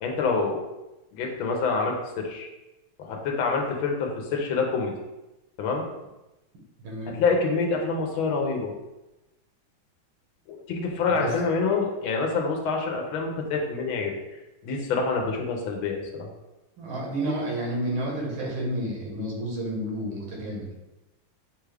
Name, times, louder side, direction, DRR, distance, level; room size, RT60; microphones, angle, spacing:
voice 1, 0.0-0.6 1.1-2.5 3.0-4.9 5.6-5.8 7.1-8.7 10.5-14.1 14.6-16.3, left 4 dB, 85° left, 1 dB, 1.5 m, -26 dB
voice 2, 6.8-7.2 11.2-11.3 16.8-20.7, right 1 dB, 90° right, -2 dB, 2.0 m, -30 dB
6.1 x 2.4 x 3.3 m, 1.0 s
omnidirectional pair, 2.2 m